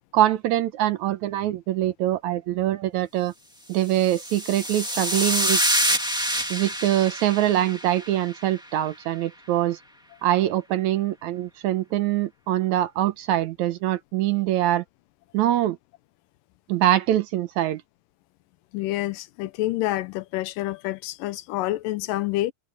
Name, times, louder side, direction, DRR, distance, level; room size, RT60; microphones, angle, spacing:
voice 1, 0.1-3.3 3.7-5.8 6.5-9.8 10.2-14.8 15.3-15.8 16.7-17.8, right 13 dB, 75° right, 1.9 m, -23 dB
sound 1, 3.9-8.4, equal, ahead, 1.1 m, -26 dB
voice 2, 18.7-22.5, left 16 dB, 85° left, 2.4 m, -28 dB
omnidirectional pair, 3.8 m